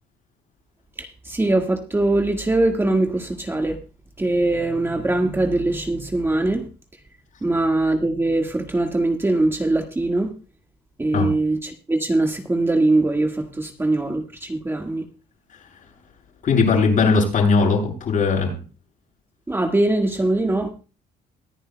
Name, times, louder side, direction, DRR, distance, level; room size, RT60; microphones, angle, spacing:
voice 1, 1.0-3.8 4.2-6.7 7.4-10.3 11.0-15.0 19.5-20.7, right 2 dB, 15° right, 1.6 m, -22 dB
voice 2, 16.4-18.5, left 4 dB, 50° left, 7.4 m, -18 dB
24.0 x 10.5 x 2.2 m
cardioid pair, 110°, 17 cm